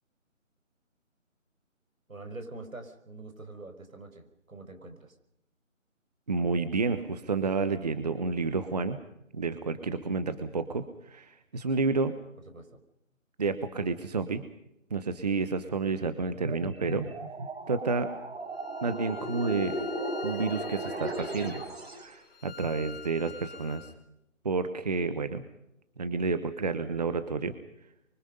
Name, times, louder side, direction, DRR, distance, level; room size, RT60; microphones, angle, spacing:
voice 1, 2.1-5.2 12.5-12.8, right 2 dB, 80° right, 7 dB, 5.6 m, -45 dB
voice 2, 6.3-9.0 9.3-12.1 13.4-14.4 14.9-17.1 17.7-18.1 18.8-19.8 20.2-21.6 22.0-23.9 24.4-25.4 26.0-27.5, right 4 dB, 30° right, 11 dB, 1.1 m, -30 dB
sound 1, 16.3-22.1, right 1 dB, 50° right, 4.6 m, -36 dB
Bowed string instrument, 18.5-23.9, left 6 dB, 45° left, 3.2 m, -46 dB
26.0 x 24.5 x 5.4 m, 0.82 s
figure-of-eight pair, 165°, 40 cm